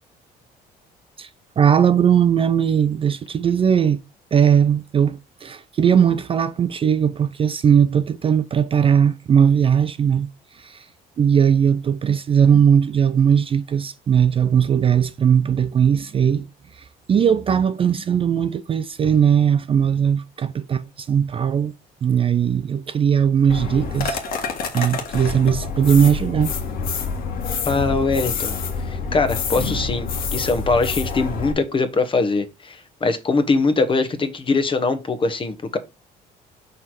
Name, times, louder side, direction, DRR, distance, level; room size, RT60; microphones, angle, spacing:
voice 1, 1.6-4.0 4.3-10.3 10.5-10.9 11.2-16.5 16.7-21.7 22.0-26.5, right 8 dB, 35° right, 0.4 m, -18 dB
sound 1, 23.5-31.5, left 5 dB, 60° left, 1.6 m, -27 dB
voice 2, 27.7-28.5 28.8-35.8, left 3 dB, 30° left, 1.1 m, -22 dB
5.5 x 4.5 x 4.7 m
cardioid pair, 110°, 17 cm